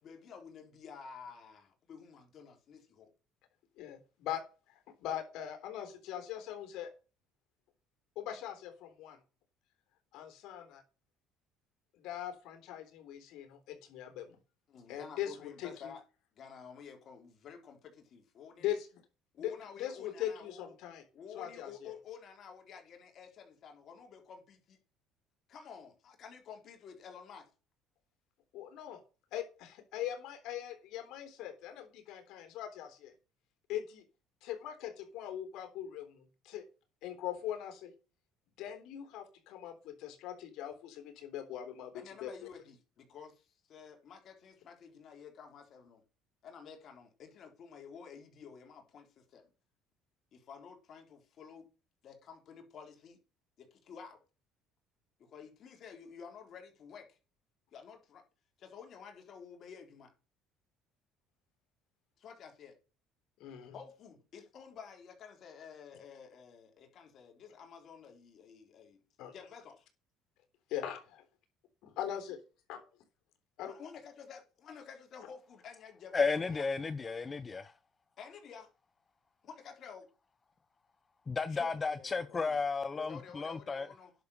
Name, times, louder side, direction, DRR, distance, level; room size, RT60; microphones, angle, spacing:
voice 1, 0.0-3.1 14.7-16.0 16.4-18.8 19.3-20.7 21.1-24.8 25.5-27.5 41.9-46.0 46.4-49.5 50.3-51.7 52.0-53.2 53.6-54.2 55.2-57.2 57.7-58.2 58.6-60.1 62.2-62.8 63.7-69.0 69.3-69.9 73.6-76.6 78.2-78.7 79.4-80.0 81.5-82.6 82.9-84.1, left 6 dB, 50° left, 3.7 m, -51 dB
voice 2, 3.8-4.4 4.7-6.9 8.2-9.2 10.1-10.8 12.0-14.4 14.9-15.9 18.6-18.9 19.4-19.5 19.8-21.0 21.3-21.9 28.5-29.0 29.3-33.1 33.7-34.0 34.4-36.6 37.0-37.9 38.6-42.3 63.4-63.7 69.2-69.3 70.7-71.2 72.0-72.4 72.7-72.8 73.6-73.7, left 11 dB, 70° left, 3.6 m, -41 dB
voice 3, 76.1-77.7 81.3-83.9, left 4 dB, 25° left, 0.6 m, -33 dB
10.5 x 6.8 x 6.5 m
cardioid pair, 110°, 0 cm